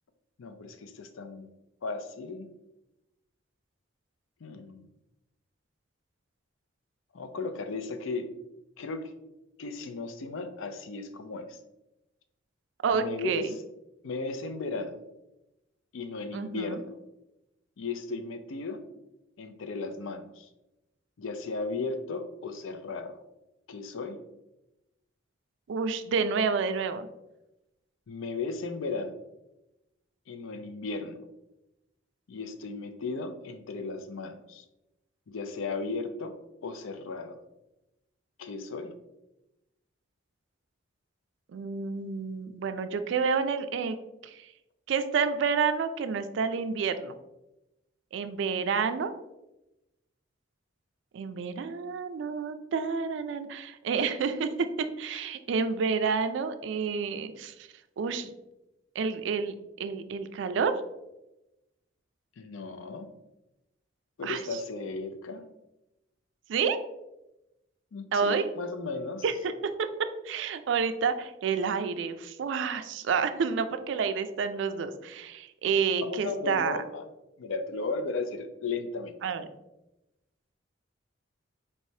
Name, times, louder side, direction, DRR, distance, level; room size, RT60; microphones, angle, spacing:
voice 1, 0.4-1.5 1.8-2.5 4.4-4.9 7.1-8.3 8.8-9.1 9.6-11.6 12.9-13.5 14.0-15.0 15.9-16.9 17.8-18.8 19.4-20.5 21.2-23.2 23.7-24.2 28.1-29.2 30.3-31.2 32.3-34.6 35.3-36.4 36.6-37.4 38.4-38.9 55.1-55.2 62.4-63.1 64.2-65.4 67.9-69.2 76.0-77.0 77.4-79.1, left 3 dB, 80° left, 9 dB, 0.4 m, -35 dB
voice 2, 12.8-13.5 16.3-16.8 25.7-27.1 41.5-44.0 44.2-44.4 44.9-47.1 48.1-49.1 51.1-54.5 55.0-57.5 58.0-58.3 59.0-60.7 64.2-64.4 66.5-66.8 68.1-68.5 69.2-69.5 69.8-69.9 70.2-76.8 79.2-79.5, right 5 dB, 65° right, 10 dB, 0.3 m, -29 dB
4.3 x 3.2 x 2.7 m, 0.93 s
head